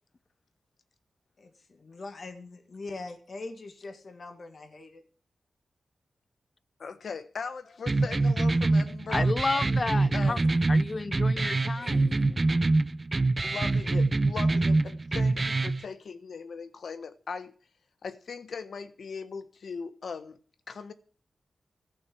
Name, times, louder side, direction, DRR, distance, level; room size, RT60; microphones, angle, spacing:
voice 1, 1.4-5.0, left 3 dB, 55° left, 1.9 m, -42 dB
voice 2, 6.8-9.3 10.1-10.5 11.8-11.9 13.4-17.5 18.0-20.4 20.7-20.9, left 5 dB, 75° left, 1.2 m, -39 dB
sound 1, 7.9-15.8, right 2 dB, 35° right, 0.6 m, -25 dB
voice 3, 9.1-10.4 10.7-12.8, left 3 dB, 40° left, 0.5 m, -32 dB
15.0 x 6.2 x 8.7 m
wide cardioid pair, 80°, 0 cm